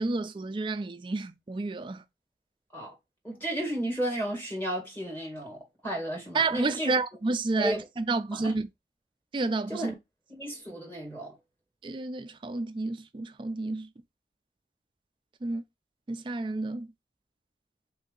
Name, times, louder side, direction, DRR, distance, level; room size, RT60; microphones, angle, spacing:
voice 1, 0.0-2.0 6.3-8.7 9.3-9.9 11.8-13.9 15.4-15.6 16.1-16.9, right 3 dB, 30° right, 0.4 m, -30 dB
voice 2, 3.2-6.9 7.6-7.9 8.3-8.5 9.7-9.9 10.3-11.4, right 1 dB, 10° left, 1.5 m, -33 dB
3.3 x 2.7 x 3.8 m
head